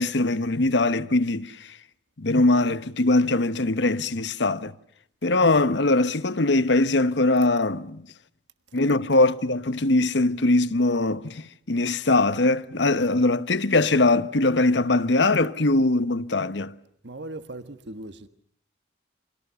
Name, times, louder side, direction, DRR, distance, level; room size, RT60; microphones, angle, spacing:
voice 1, 0.0-1.8 2.2-4.7 5.2-8.1 8.7-16.7, left 2 dB, 70° left, 1.0 m, -22 dB
voice 2, 17.0-18.3, right 2 dB, 70° right, 1.4 m, -38 dB
29.5 x 25.5 x 6.9 m
head